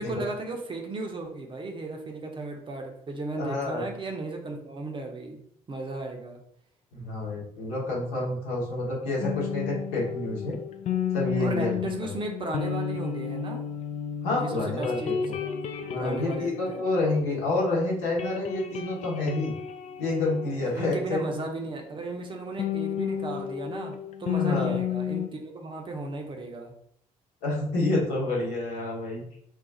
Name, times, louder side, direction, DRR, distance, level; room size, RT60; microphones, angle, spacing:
voice 1, 0.0-5.4 5.7-6.4 11.4-13.6 14.4-15.6 15.9-16.8 20.6-26.7, right 2 dB, 30° right, 2 dB, 0.6 m, -35 dB
voice 2, 3.3-3.8 6.9-10.5 11.1-12.1 14.2-15.0 15.9-19.5 20.0-21.4 24.4-24.8 27.4-29.2, left 2 dB, 65° left, -4 dB, 1.1 m, -28 dB
sound 1, 9.2-17.7 18.0-21.4 22.6-25.3, left 9 dB, 40° left, 0.4 m, -32 dB
2.4 x 2.3 x 3.9 m, 0.69 s
figure-of-eight pair, 45°, 18 cm